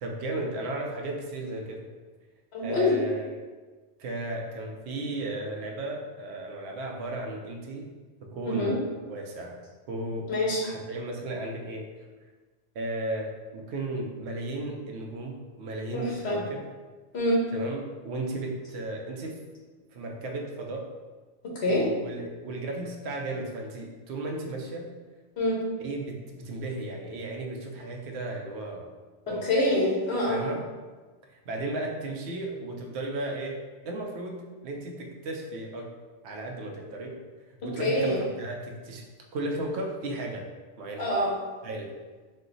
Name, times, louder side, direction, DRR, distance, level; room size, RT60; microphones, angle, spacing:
voice 1, 0.0-1.9 2.6-3.3 4.0-7.9 8.2-9.5 9.9-10.3 10.6-11.9 12.7-16.6 17.5-19.4 19.9-20.9 21.6-24.9 25.8-28.9 29.3-29.5 30.3-30.6 31.2-33.6 33.8-35.9 36.2-37.2 37.5-39.0 39.3-40.4 40.8-41.1 41.6-41.9, right 2 dB, 70° right, 1 dB, 0.9 m, -35 dB
voice 2, 2.5-2.9 8.4-8.7 10.3-10.6 15.9-16.4 17.1-17.4 21.5-21.8 25.4-25.6 29.3-30.4 37.8-38.2 41.0-41.3, left 1 dB, 65° left, -4 dB, 1.3 m, -25 dB
4.2 x 2.2 x 3.8 m, 1.3 s
omnidirectional pair, 1.2 m